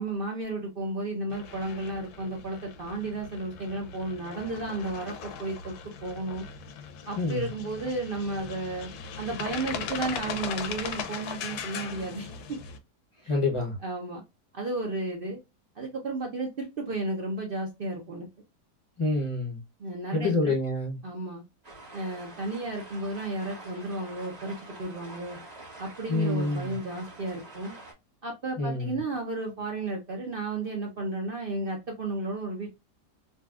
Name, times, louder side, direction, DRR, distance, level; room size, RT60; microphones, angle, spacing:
voice 1, 0.0-5.7 6.0-6.5 7.1-8.9 9.2-12.6 13.2-13.3 13.8-14.2 14.5-15.4 15.8-18.3 19.8-20.5 21.0-21.4 21.9-25.4 25.8-27.8 28.2-32.7, right 2 dB, 65° right, 0.5 m, -33 dB
sound 1, 1.3-12.8, left 6 dB, 75° left, 1.1 m, -39 dB
voice 2, 7.2-7.5 13.3-13.8 19.0-19.6 20.1-21.0 26.1-26.8 28.6-29.0, left 2 dB, 30° left, 0.5 m, -27 dB
sound 2, 21.6-27.9, right 2 dB, 30° right, 1.1 m, -46 dB
4.0 x 2.3 x 2.3 m
omnidirectional pair, 1.8 m